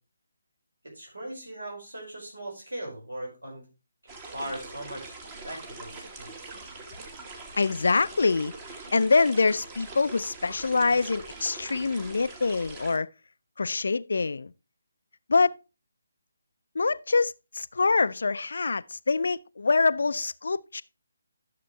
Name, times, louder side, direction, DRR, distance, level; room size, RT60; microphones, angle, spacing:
voice 1, 0.8-3.6 4.3-5.1 5.5-6.3, right 1 dB, 75° right, 5.2 m, -39 dB
sound 1, 4.1-13.0, right 3 dB, 20° right, 1.4 m, -43 dB
voice 2, 7.6-8.5 8.9-13.1 13.6-14.5 15.3-15.6 16.8-20.8, left 4 dB, 60° left, 0.4 m, -25 dB
12.5 x 6.8 x 3.2 m
figure-of-eight pair, 145°, 0 cm